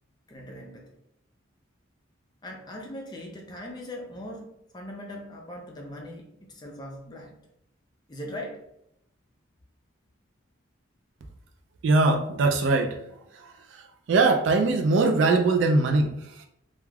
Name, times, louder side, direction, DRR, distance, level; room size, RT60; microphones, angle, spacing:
voice 1, 0.3-1.0 2.4-7.4 8.1-8.6, left 1 dB, 20° left, 0 dB, 0.4 m, -40 dB
voice 2, 11.8-13.0 13.3-16.5, right 3 dB, 60° right, 4 dB, 0.3 m, -22 dB
2.3 x 2.3 x 3.2 m, 0.78 s
head